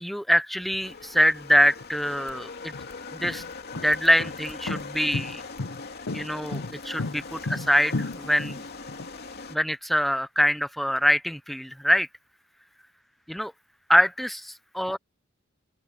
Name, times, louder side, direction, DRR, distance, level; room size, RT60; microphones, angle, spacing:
voice 1, 0.0-2.7 3.1-3.4 3.8-5.4 6.1-8.6 9.5-12.1 13.3-13.5 13.9-15.0, equal, ahead, 0.6 m, -24 dB
sound 1, 0.8-9.6, left 4 dB, 50° left, 2.9 m, -41 dB
sound 2, 1.8-1.9 2.6-9.1, left 2 dB, 70° left, 1.0 m, -33 dB
open air
head